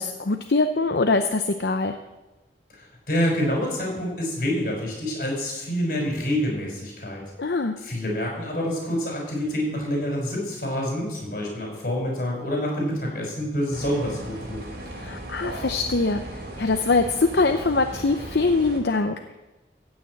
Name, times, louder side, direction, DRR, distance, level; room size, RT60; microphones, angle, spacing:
voice 1, 0.0-2.0 7.4-7.7 14.9-19.2, left 3 dB, 70° left, 7 dB, 0.7 m, -23 dB
voice 2, 2.7-7.2 7.8-14.7, equal, 50° left, -1 dB, 5.6 m, -27 dB
sound 1, 13.7-18.8, right 1 dB, 65° right, 3.1 m, -37 dB
15.0 x 6.5 x 8.6 m, 1.1 s
head